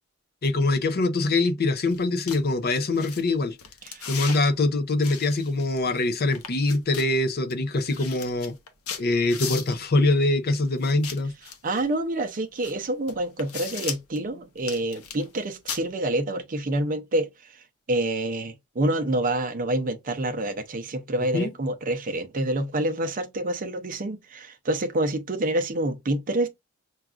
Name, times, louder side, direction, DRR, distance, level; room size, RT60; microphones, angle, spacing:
voice 1, 0.4-3.6 4.1-8.5 9.0-11.3 21.3-21.5, left 2 dB, 45° left, 0.5 m, -23 dB
sound 1, 1.9-2.0 2.3-2.4 2.9-3.2 3.6-4.4 5.0-6.0 6.3-7.1 7.5-7.6 7.8-9.9 10.8-11.8 12.6-12.7 13.1-14.2 14.6-15.4 15.7-15.8, left 7 dB, 85° left, 0.8 m, -36 dB
voice 2, 3.8-4.4 11.5-17.6 17.9-26.5, right 1 dB, 40° right, 0.6 m, -27 dB
5.9 x 2.3 x 2.4 m
head